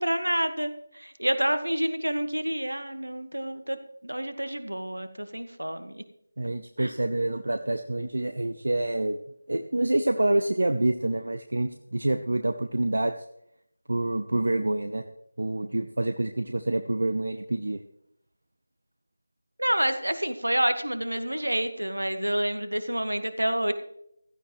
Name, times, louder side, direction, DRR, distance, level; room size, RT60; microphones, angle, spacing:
voice 1, 0.0-3.8 4.0-6.0 6.8-6.9 19.6-23.7, right 1 dB, 75° right, 9 dB, 1.6 m, -28 dB
voice 2, 6.4-9.2 9.5-13.1 13.9-15.0 15.4-17.8, right 2 dB, 60° right, 8 dB, 0.8 m, -27 dB
15.5 x 13.0 x 3.2 m, 0.76 s
figure-of-eight pair, 165°, 0 cm